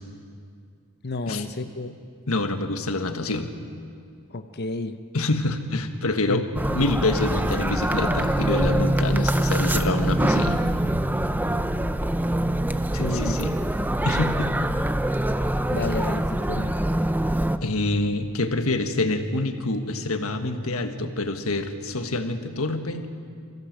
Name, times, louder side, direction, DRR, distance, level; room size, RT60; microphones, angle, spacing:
voice 1, 1.0-2.0 4.3-5.0 6.3-6.4 13.0-13.4 15.7-16.7, left 2 dB, 50° left, 10 dB, 0.9 m, -30 dB
voice 2, 2.3-3.5 5.1-6.4 6.7-10.6 12.9-13.5 14.0-14.5 17.6-23.1, left 2 dB, 75° left, 7 dB, 1.5 m, -26 dB
sound 1, 6.5-17.6, right 1 dB, 10° right, 0.6 m, -24 dB
26.0 x 15.5 x 7.5 m, 2.3 s
head